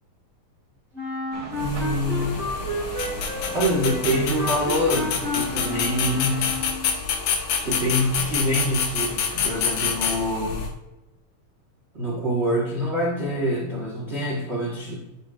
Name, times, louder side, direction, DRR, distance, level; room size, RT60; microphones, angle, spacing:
Wind instrument woodwind instrument, 0.9-7.0, left 2 dB, 35° right, 2.8 m, -31 dB
sound 1, 1.3-6.5, right 2 dB, 55° right, 2.7 m, -40 dB
sound 2, 1.6-10.7, left 6 dB, 75° left, 2.1 m, -28 dB
voice 1, 1.6-2.4 3.5-6.4 7.6-10.6 11.9-15.0, equal, 80° right, -4 dB, 0.6 m, -25 dB
10.5 x 5.4 x 2.4 m, 0.98 s
omnidirectional pair, 3.6 m